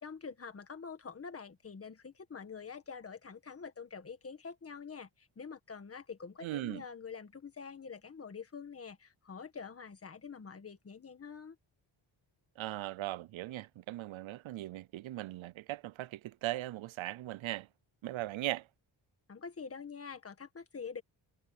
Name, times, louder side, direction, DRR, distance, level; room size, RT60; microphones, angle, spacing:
voice 1, 0.0-11.6 19.3-21.0, left 5 dB, 30° left, 1.7 m, -46 dB
voice 2, 6.4-6.8 12.6-17.7 18.0-18.7, right 16 dB, 90° right, 0.6 m, -39 dB
wide cardioid pair, 175°, 46 cm